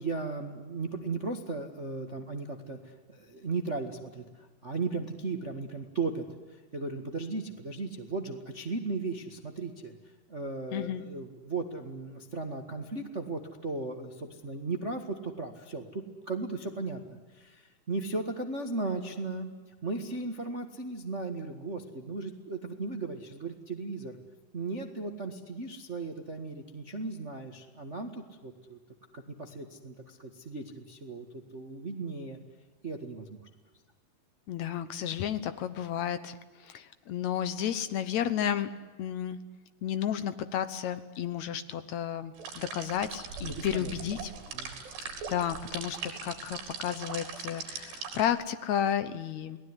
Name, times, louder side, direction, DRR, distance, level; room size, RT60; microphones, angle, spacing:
voice 1, 0.0-9.9 10.3-19.5 19.8-24.2 24.5-28.8 29.1-32.4 32.8-33.4 43.4-43.9 44.5-44.8, right 3 dB, 65° right, 5 dB, 0.6 m, -36 dB
voice 2, 10.7-11.1 34.5-36.3 36.6-38.7 39.0-39.4 39.8-44.3 45.3-49.6, left 9 dB, 75° left, 12 dB, 1.6 m, -32 dB
sound 1, 42.4-48.3, right 5 dB, 85° right, 6.1 m, -40 dB
29.5 x 19.5 x 9.9 m, 1.3 s
omnidirectional pair, 4.7 m